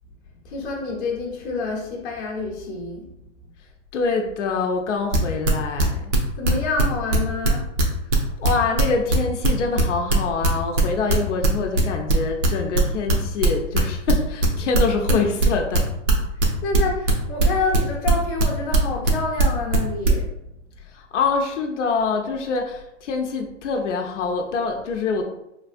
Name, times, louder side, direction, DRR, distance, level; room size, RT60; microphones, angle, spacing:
voice 1, 0.4-3.1 3.4-3.5 6.4-7.8 15.1-15.3 16.3-20.4, left 3 dB, 25° left, -2 dB, 0.7 m, -28 dB
voice 2, 3.9-6.1 8.4-15.9 20.8-25.2, left 4 dB, 70° left, 2 dB, 0.6 m, -25 dB
sound 1, 5.1-6.8 7.1-11.1 11.4-15.1 15.4-20.1, right 2 dB, 75° right, 1.0 m, -19 dB
3.3 x 2.4 x 2.4 m, 0.85 s
hypercardioid pair, 140°, 37 cm